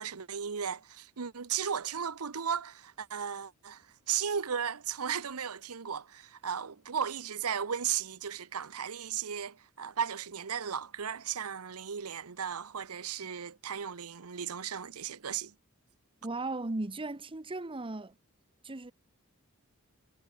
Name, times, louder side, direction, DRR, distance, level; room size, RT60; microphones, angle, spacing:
voice 1, 0.0-3.8 4.1-15.5, right 8 dB, 80° right, 0.9 m, -35 dB
voice 2, 16.2-18.1 18.6-18.9, right 2 dB, 25° right, 0.9 m, -36 dB
head